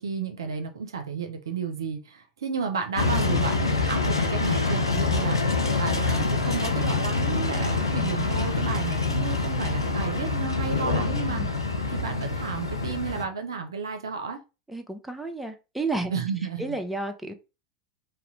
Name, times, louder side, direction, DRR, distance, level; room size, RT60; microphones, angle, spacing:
voice 1, 0.0-11.4 11.9-14.4 16.1-16.7, right 5 dB, 75° right, 0.5 m, -32 dB
sound 1, 3.0-13.2, left 3 dB, 85° left, 0.5 m, -26 dB
voice 2, 10.9-11.5 14.7-16.1 16.6-17.3, right 2 dB, 5° right, 0.6 m, -32 dB
2.7 x 2.1 x 3.9 m
figure-of-eight pair, 85°, 2 cm